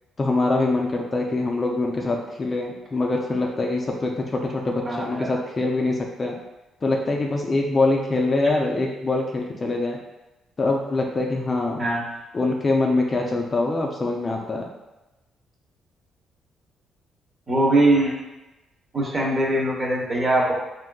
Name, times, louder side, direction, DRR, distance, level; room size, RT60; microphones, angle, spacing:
voice 1, 0.2-6.4 6.8-10.0 10.6-11.8 12.3-14.7, left 2 dB, 30° left, 0 dB, 0.4 m, -24 dB
voice 2, 4.8-5.3 11.8-12.0 17.5-18.1 18.9-20.5, right 1 dB, 30° right, -3 dB, 0.9 m, -21 dB
3.5 x 2.6 x 2.2 m, 1.0 s
cardioid pair, 90°, 0 cm